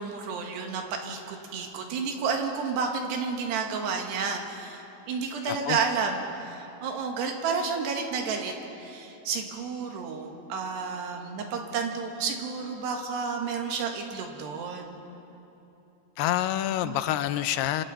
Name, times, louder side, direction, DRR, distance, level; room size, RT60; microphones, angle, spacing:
voice 1, 0.0-8.5 8.8-15.0 16.8-17.0, right 5 dB, 80° right, 3 dB, 3.7 m, -31 dB
voice 2, 5.4-5.8 16.2-17.8, left 13 dB, 80° left, 12 dB, 2.5 m, -27 dB
26.5 x 25.5 x 4.2 m, 2.9 s
omnidirectional pair, 4.8 m